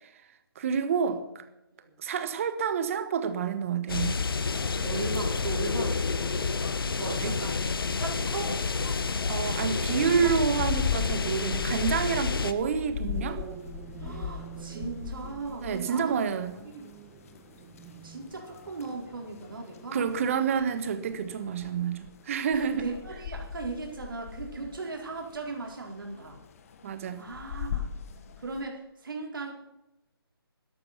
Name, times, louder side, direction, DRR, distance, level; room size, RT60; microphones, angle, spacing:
voice 1, 0.5-1.4 2.0-4.2 7.1-7.4 9.3-13.4 15.6-16.5 19.9-22.9 26.8-27.3, right 7 dB, 35° right, 11 dB, 1.3 m, -28 dB
sound 1, 3.9-12.5, left 4 dB, 65° left, 1.2 m, -29 dB
voice 2, 4.8-6.4 7.0-7.6 8.0-8.6 9.9-10.3 12.3-12.4 14.0-16.2 16.6-16.9 18.0-20.1 22.5-26.4 27.2-27.9 28.4-29.5, right 3 dB, 60° right, 1 dB, 4.2 m, -37 dB
sound 2, 10.2-28.6, left 8 dB, 35° left, 1.3 m, -38 dB
sound 3, 13.1-21.9, right 9 dB, 10° right, 0.6 m, -48 dB
12.5 x 11.5 x 5.9 m, 0.91 s
figure-of-eight pair, 150°, 13 cm